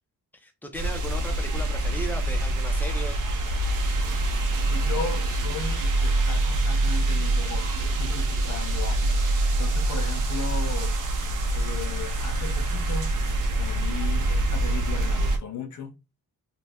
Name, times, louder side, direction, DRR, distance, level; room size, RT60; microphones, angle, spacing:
voice 1, 0.3-3.2, equal, 5° left, 0.5 m, -36 dB
sound 1, 0.7-15.4, right 2 dB, 60° right, 0.7 m, -25 dB
voice 2, 4.7-9.3 9.6-11.0 11.5-13.1 13.6-16.0, left 6 dB, 55° left, 0.7 m, -36 dB
2.7 x 2.2 x 3.3 m
wide cardioid pair, 145°, 35 cm